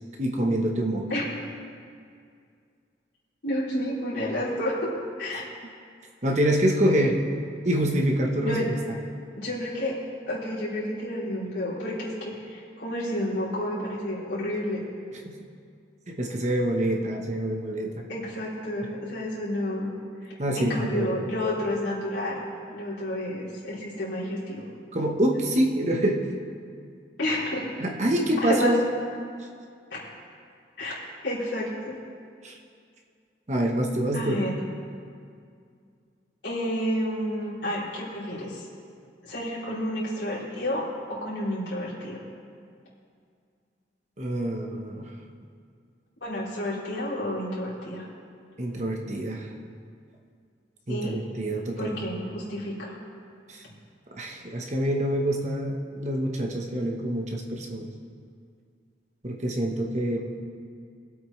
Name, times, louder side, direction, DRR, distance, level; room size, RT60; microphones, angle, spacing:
voice 1, 0.2-1.0 6.2-7.2 7.6-8.6 15.2-15.3 16.1-18.0 20.4-21.1 24.9-26.2 27.8-28.8 32.4-32.6 33.5-34.4 44.2-45.1 48.6-49.5 50.9-52.0 53.5-53.6 54.1-57.9 59.2-60.2, right 1 dB, 40° right, 1 dB, 1.2 m, -26 dB
voice 2, 3.4-4.9 5.2-5.4 8.4-8.7 9.3-10.0 10.3-14.8 18.1-19.9 20.2-24.7 27.2-27.7 28.4-28.8 29.9-30.1 30.8-30.9 31.2-31.9 34.1-34.5 36.4-38.7 39.2-42.2 46.2-48.1 50.9-51.2 51.8-53.0, left 1 dB, 80° left, -8 dB, 3.5 m, -30 dB
20.5 x 8.4 x 3.3 m, 2.3 s
head